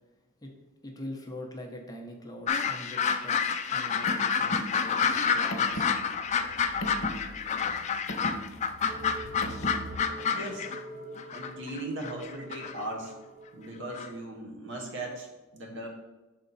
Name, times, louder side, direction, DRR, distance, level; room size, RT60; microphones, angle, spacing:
voice 1, 0.8-3.4 3.7-6.0, left 1 dB, 20° left, 1 dB, 0.7 m, -43 dB
sound 1, 2.5-10.8 11.2-12.8 13.9-14.1, left 6 dB, 35° left, 0.3 m, -29 dB
Car, 3.7-10.0, equal, 65° left, 1.1 m, -38 dB
sound 2, 8.9-13.9, equal, 40° right, 0.9 m, -45 dB
voice 2, 10.3-10.7 11.3-13.1 13.5-15.3 15.5-15.9, right 1 dB, 60° right, 1 dB, 1.2 m, -38 dB
6.8 x 4.4 x 4.0 m, 1.1 s
head